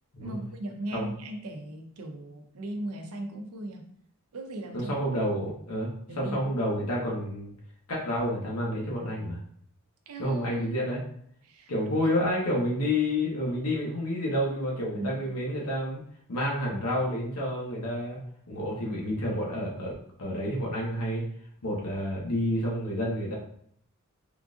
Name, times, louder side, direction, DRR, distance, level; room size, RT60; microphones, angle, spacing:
voice 1, 0.2-3.9 4.3-4.9 6.1-6.5 10.1-10.7 11.4-12.1 14.9-15.2 16.7-16.8, right 1 dB, 75° right, 4 dB, 0.6 m, -38 dB
voice 2, 4.7-7.5 7.9-9.4 10.2-11.0 11.7-16.0 16.3-18.2 18.5-19.9 20.2-21.2 21.6-23.3, equal, 85° left, -3 dB, 0.9 m, -29 dB
3.7 x 2.4 x 2.5 m, 0.66 s
head